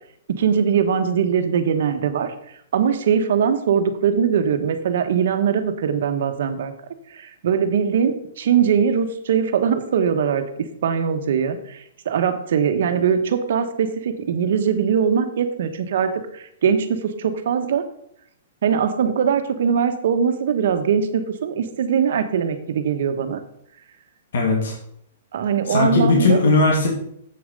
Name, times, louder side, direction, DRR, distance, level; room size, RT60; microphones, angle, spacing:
voice 1, 0.4-2.3 2.7-6.7 7.1-10.4 10.8-17.8 18.6-23.4 25.3-26.4, right 7 dB, 60° right, 8 dB, 1.1 m, -21 dB
voice 2, 24.3-24.8 25.7-26.9, left 3 dB, 70° left, -1 dB, 2.6 m, -18 dB
7.8 x 7.1 x 5.3 m, 0.69 s
hypercardioid pair, 165°, 0 cm